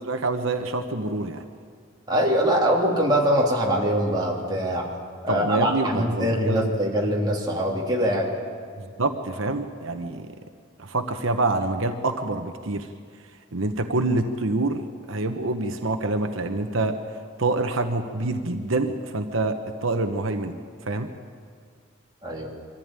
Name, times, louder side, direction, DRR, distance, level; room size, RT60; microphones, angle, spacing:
voice 1, 0.0-1.4 5.3-6.7 8.8-10.3 10.8-12.9 13.5-14.8 15.1-17.0 17.4-20.6 20.9-21.1, right 2 dB, 80° right, 6 dB, 1.1 m, -26 dB
voice 2, 2.1-4.9 5.2-8.3 22.2-22.5, equal, 20° right, -3 dB, 3.2 m, -23 dB
23.5 x 15.0 x 8.9 m, 2.1 s
head